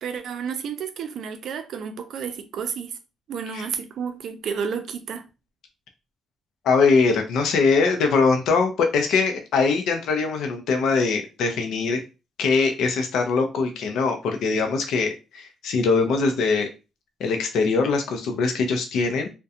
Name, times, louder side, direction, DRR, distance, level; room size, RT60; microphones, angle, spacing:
voice 1, 0.0-3.0 3.3-5.2, right 6 dB, 70° right, 0.4 m, -31 dB
voice 2, 6.6-12.0 12.4-16.7 17.2-19.3, left 4 dB, 80° left, 0.4 m, -22 dB
2.4 x 2.1 x 2.7 m
cardioid pair, 90°, 0 cm